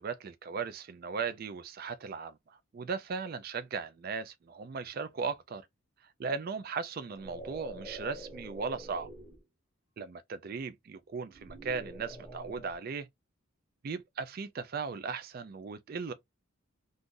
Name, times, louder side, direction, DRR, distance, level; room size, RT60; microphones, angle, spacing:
voice 1, 0.0-5.6 6.2-9.1 10.0-13.1 13.8-16.1, right 5 dB, 45° right, 0.4 m, -37 dB
sound 1, 7.0-9.4 11.2-12.8, right 1 dB, 10° right, 1.0 m, -46 dB
2.5 x 2.4 x 3.7 m
head